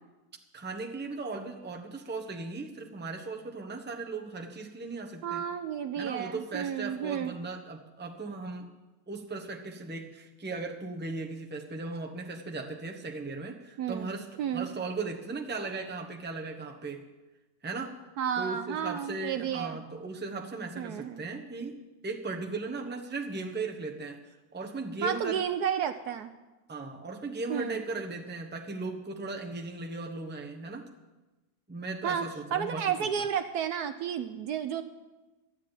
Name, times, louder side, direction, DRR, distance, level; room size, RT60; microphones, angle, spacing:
voice 1, 0.5-5.4 6.0-8.7 9.1-17.0 17.6-18.0 18.3-21.8 22.0-25.4 26.7-30.9 31.7-33.1, right 3 dB, 10° right, 2 dB, 0.8 m, -37 dB
voice 2, 5.2-7.3 13.8-14.1 14.4-14.7 18.2-19.8 20.8-21.2 25.0-26.3 27.5-27.8 32.0-34.8, right 8 dB, 70° right, 8 dB, 1.1 m, -32 dB
12.5 x 8.4 x 9.0 m, 1.1 s
omnidirectional pair, 1.9 m